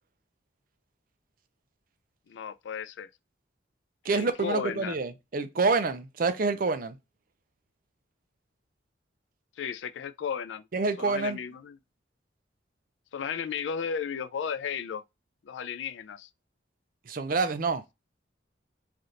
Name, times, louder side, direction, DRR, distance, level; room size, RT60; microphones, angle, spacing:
voice 1, 2.3-3.1 4.1-5.0 9.6-10.7 11.0-11.8 13.1-15.0 15.4-16.3, left 7 dB, 75° left, 0.3 m, -34 dB
voice 2, 4.1-7.0 10.7-11.4 17.1-17.8, right 4 dB, 50° right, 0.5 m, -27 dB
3.3 x 2.5 x 2.6 m
head